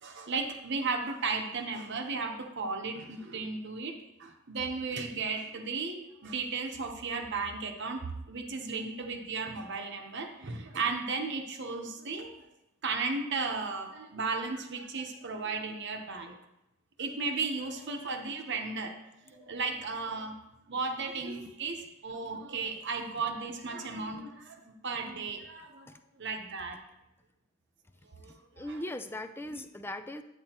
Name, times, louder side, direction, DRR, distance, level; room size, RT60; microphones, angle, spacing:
voice 1, 0.0-12.5 12.8-16.3 17.0-18.9 19.3-20.4 20.7-25.9 26.2-26.8 28.1-28.6, right 4 dB, 55° right, 4 dB, 0.9 m, -35 dB
voice 2, 17.1-18.0 18.3-18.7 19.3-20.0 25.1-25.2 25.9-26.0 28.2-30.2, left 1 dB, 10° left, 9 dB, 0.4 m, -42 dB
8.9 x 8.7 x 2.9 m, 0.90 s
head